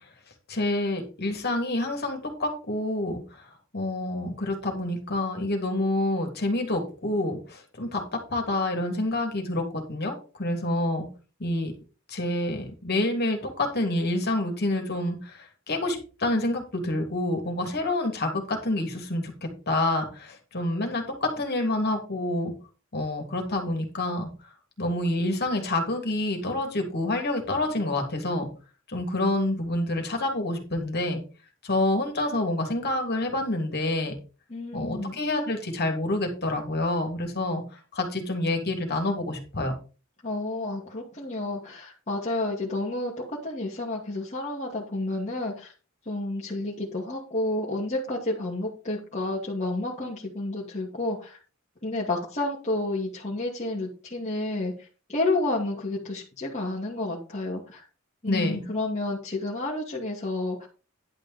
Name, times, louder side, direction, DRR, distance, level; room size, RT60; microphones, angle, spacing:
voice 1, 0.5-3.2 3.7-11.1 11.4-11.7 12.1-15.4 15.7-19.3 19.7-22.5 22.9-24.3 24.8-28.5 28.9-31.2 31.6-34.1 34.7-37.6 37.9-39.7 58.3-58.6, left 1 dB, 50° left, 3 dB, 3.0 m, -27 dB
voice 2, 34.5-35.2 40.2-43.1 43.4-45.7 46.1-51.4 51.8-54.7 55.1-57.8 58.2-60.7, left 2 dB, 35° left, -4 dB, 2.4 m, -30 dB
11.0 x 5.4 x 5.3 m, 0.35 s
head